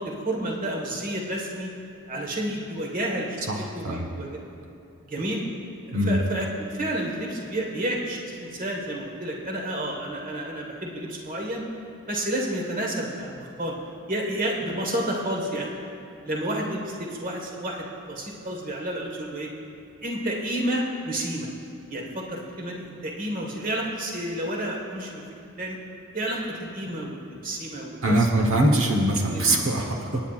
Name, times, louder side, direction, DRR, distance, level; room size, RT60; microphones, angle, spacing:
voice 1, 0.0-1.7 2.1-4.4 5.0-5.4 5.9-11.6 12.1-13.7 14.1-15.7 16.2-19.5 20.0-21.5 21.9-25.2 25.6-25.8 26.1-28.3 28.7-28.8 29.2-29.4, right 1 dB, 40° right, 0 dB, 1.5 m, -30 dB
voice 2, 3.5-4.1 5.9-6.2 28.0-30.2, right 1 dB, 75° right, 1 dB, 1.1 m, -22 dB
27.0 x 9.3 x 2.5 m, 2.6 s
head